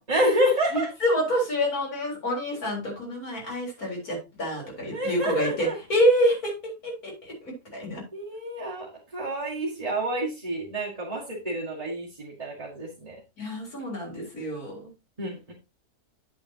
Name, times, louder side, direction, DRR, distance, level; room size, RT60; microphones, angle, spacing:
voice 1, 0.1-0.9 4.9-5.8 8.1-13.2 15.2-15.5, equal, 25° right, -5 dB, 1.9 m, -28 dB
voice 2, 0.7-8.0 13.4-14.9, equal, 75° left, -1 dB, 4.4 m, -27 dB
9.2 x 8.5 x 2.8 m, 0.27 s
omnidirectional pair, 1.6 m